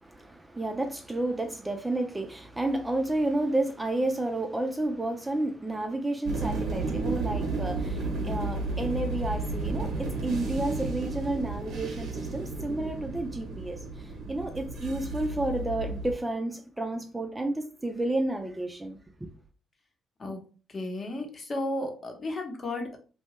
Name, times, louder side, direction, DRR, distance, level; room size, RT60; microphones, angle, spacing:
voice 1, 0.0-19.3, right 2 dB, 15° right, 0.4 m, -31 dB
sound 1, 6.2-16.1, right 3 dB, 70° right, 0.7 m, -32 dB
voice 2, 20.2-23.0, left 1 dB, 40° left, 0.8 m, -34 dB
2.7 x 2.2 x 3.0 m
cardioid pair, 90°, 0 cm